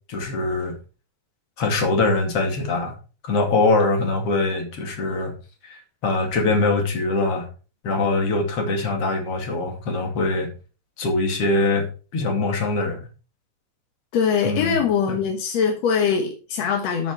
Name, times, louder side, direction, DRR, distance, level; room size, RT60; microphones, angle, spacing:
voice 1, 0.1-0.7 1.6-3.0 3.2-5.3 5.6-7.5 7.8-10.5 11.0-11.9 12.1-13.1 14.4-15.2, left 3 dB, 40° left, 2.9 m, -23 dB
voice 2, 14.1-17.1, left 6 dB, 65° left, 1.7 m, -22 dB
12.5 x 6.1 x 4.6 m
omnidirectional pair, 4.7 m